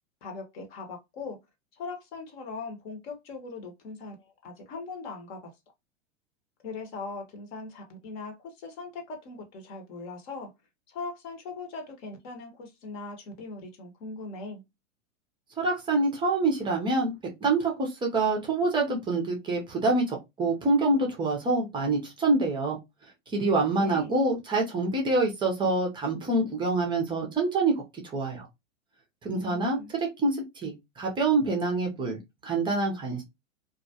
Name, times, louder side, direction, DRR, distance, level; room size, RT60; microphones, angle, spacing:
voice 1, 0.2-1.4 1.8-5.5 6.6-10.5 10.9-14.6 23.7-24.1 29.3-30.0, left 3 dB, 50° left, 0.8 m, -40 dB
voice 2, 15.6-17.1 17.4-22.8 23.3-27.7 28.1-28.5 29.2-32.2 32.4-33.2, right 2 dB, 15° right, 0.5 m, -26 dB
2.2 x 2.1 x 2.7 m
hypercardioid pair, 115°, 39 cm